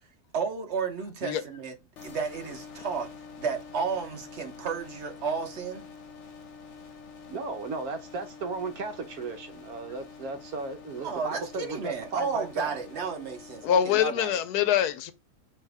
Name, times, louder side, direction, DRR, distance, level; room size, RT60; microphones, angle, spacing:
voice 1, 0.3-1.7 2.0-3.1 3.4-5.9 11.0-14.4, right 5 dB, 50° right, 1.2 m, -32 dB
sound 1, 2.0-13.7, left 5 dB, 55° left, 1.0 m, -47 dB
voice 2, 7.3-12.8, right 3 dB, 75° right, 1.2 m, -35 dB
voice 3, 13.6-15.1, left 9 dB, 90° left, 1.2 m, -24 dB
5.7 x 2.7 x 3.4 m
omnidirectional pair, 1.6 m